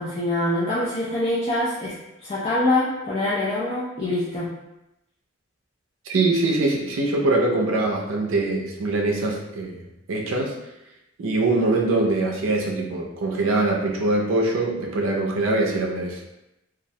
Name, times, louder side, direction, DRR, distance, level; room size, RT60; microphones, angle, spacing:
voice 1, 0.0-2.0 2.2-4.5, left 1 dB, 30° left, -8 dB, 0.4 m, -24 dB
voice 2, 6.1-9.8 10.1-10.6 11.2-16.2, right 2 dB, 80° right, 0 dB, 0.4 m, -23 dB
2.3 x 2.0 x 2.6 m, 0.89 s
head